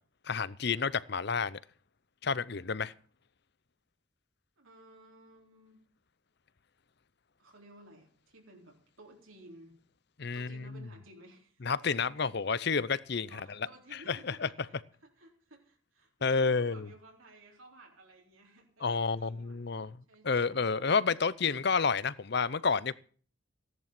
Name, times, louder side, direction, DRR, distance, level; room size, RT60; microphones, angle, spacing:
voice 1, 0.3-1.6 2.2-2.9 10.2-10.8 11.6-13.4 13.9-14.5 16.2-16.9 18.8-20.0 20.2-22.9, left 5 dB, 55° left, 0.7 m, -30 dB
voice 2, 4.6-5.8 7.4-9.7 10.3-11.7 12.2-12.3 13.3-20.7, right 2 dB, 80° right, 4.1 m, -56 dB
16.5 x 11.0 x 5.9 m
head